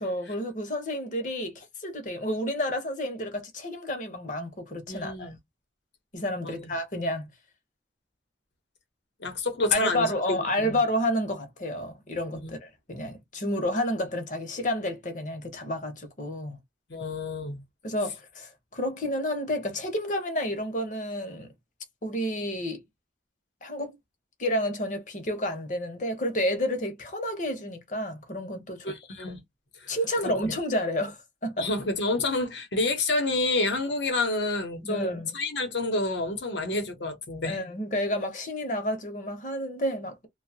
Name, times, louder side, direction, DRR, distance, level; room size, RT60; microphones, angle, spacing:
voice 1, 0.0-5.3 6.1-7.3 9.7-16.6 17.8-21.5 22.0-22.8 23.6-24.0 24.4-29.0 29.9-31.7 34.8-35.3 37.4-40.3, left 1 dB, 45° left, 0.9 m, -30 dB
voice 2, 4.9-5.4 6.4-6.6 9.2-10.8 12.3-12.5 16.9-17.6 28.8-29.4 29.8-29.9 30.2-30.5 31.6-37.6, left 2 dB, 75° left, 1.0 m, -29 dB
2.7 x 2.3 x 2.8 m
head